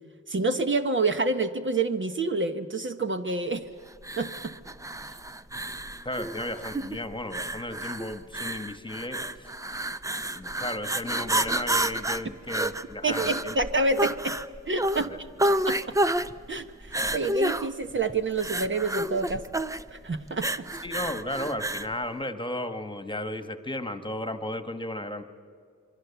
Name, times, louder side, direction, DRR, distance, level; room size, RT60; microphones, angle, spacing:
voice 1, 0.3-3.7 4.2-4.5 13.0-14.4 14.7-15.1 15.7-15.9 16.5-19.4 19.9-20.5, right 3 dB, 40° right, 7 dB, 1.2 m, -28 dB
sound 1, 4.0-21.9, right 1 dB, 10° right, 0.6 m, -30 dB
voice 2, 6.0-9.5 10.3-13.5 15.0-15.2 20.8-25.2, left 1 dB, 15° left, 9 dB, 1.5 m, -34 dB
27.5 x 23.0 x 7.1 m, 2.1 s
cardioid pair, 95°, 29 cm